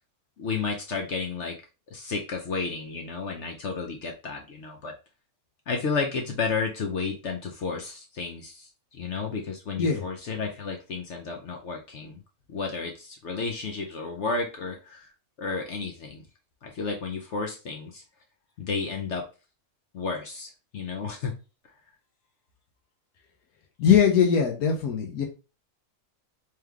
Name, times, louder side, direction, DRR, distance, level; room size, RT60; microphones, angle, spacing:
voice 1, 0.4-1.6 1.9-4.9 5.7-12.2 12.5-15.1 15.4-16.2 16.6-18.0 18.6-19.2 19.9-21.3, left 4 dB, 60° left, 2 dB, 0.9 m, -32 dB
voice 2, 23.8-25.3, left 7 dB, 85° left, 2 dB, 1.2 m, -21 dB
3.3 x 3.2 x 3.5 m, 0.31 s
omnidirectional pair, 1.6 m